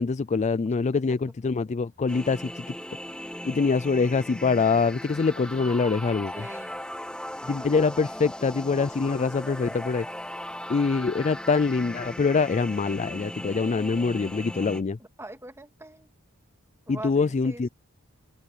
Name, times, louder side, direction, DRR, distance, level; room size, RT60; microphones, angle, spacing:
voice 1, 0.0-2.6 3.4-6.4 7.5-10.1 10.7-15.0 16.9-17.7, left 4 dB, 30° left, 0.4 m, -24 dB
sound 1, 2.1-14.8, equal, 5° left, 1.4 m, -38 dB
voice 2, 6.3-6.8 15.0-16.1 16.9-17.7, right 1 dB, 10° right, 2.3 m, -42 dB
head